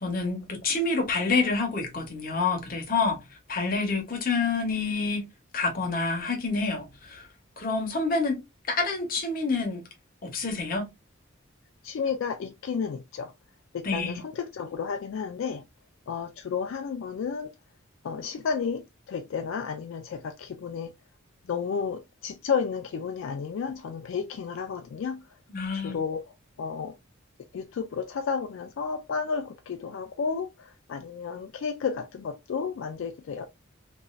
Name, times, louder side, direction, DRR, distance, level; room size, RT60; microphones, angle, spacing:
voice 1, 0.0-3.2 3.5-5.3 5.5-7.2 7.6-8.4 8.7-9.8 10.2-10.9 13.8-14.2 25.5-26.0, left 4 dB, 45° left, 0.9 m, -27 dB
voice 2, 11.8-13.3 13.7-15.6 16.1-17.5 18.0-20.9 21.5-25.2 25.7-26.2 26.6-26.9 27.5-33.5, left 6 dB, 75° left, 0.3 m, -32 dB
3.0 x 2.5 x 2.3 m
head